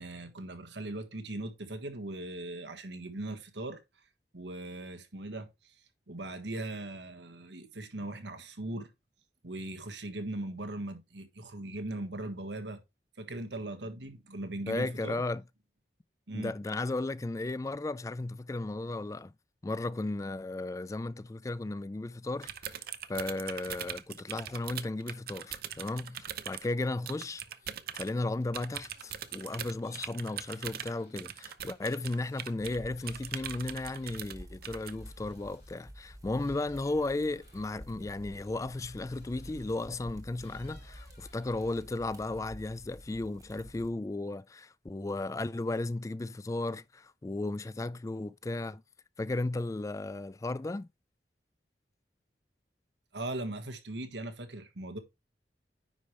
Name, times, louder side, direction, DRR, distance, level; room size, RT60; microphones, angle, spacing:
voice 1, 0.0-3.8 4.3-5.7 6.1-8.9 9.4-12.8 13.2-15.2 16.3-16.5 53.1-55.0, right 2 dB, 85° right, 1.5 m, -39 dB
voice 2, 14.7-15.4 16.3-19.3 19.6-22.8 23.1-27.4 27.9-48.8 49.2-50.9, left 2 dB, 20° left, 0.3 m, -35 dB
sound 1, 22.4-26.7 27.1-28.1 28.5-32.8 33.1-34.4 34.6-34.9, right 10 dB, 55° right, 0.6 m, -41 dB
sound 2, 25.3-25.9 26.2-35.9 36.3-40.0 40.4-42.1 42.4-43.0, left 4 dB, 70° left, 3.1 m, -63 dB
sound 3, 32.6-43.9, equal, 20° right, 1.5 m, -50 dB
9.8 x 5.1 x 3.2 m
head